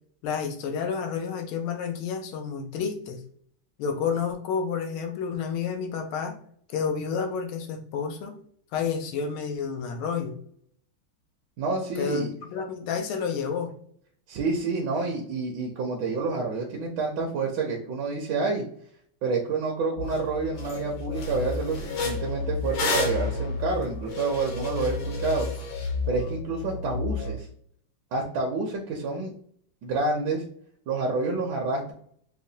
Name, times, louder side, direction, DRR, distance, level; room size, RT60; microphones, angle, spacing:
voice 1, 0.2-3.2 3.8-6.4 6.7-8.3 8.7-10.4 12.0-13.7, left 6 dB, 85° left, 4 dB, 1.5 m, -30 dB
voice 2, 11.6-12.3 14.3-18.6 19.2-25.5 26.1-27.5 28.1-29.3 29.8-30.4 30.9-31.9, right 3 dB, 70° right, 0 dB, 1.2 m, -28 dB
sound 1, 20.0-27.3, left 4 dB, 50° left, 0.9 m, -33 dB
sound 2, 20.1-20.2 20.6-20.8 21.1-25.9, left 4 dB, 65° left, 1.3 m, -33 dB
4.9 x 2.1 x 2.7 m, 0.62 s
omnidirectional pair, 2.2 m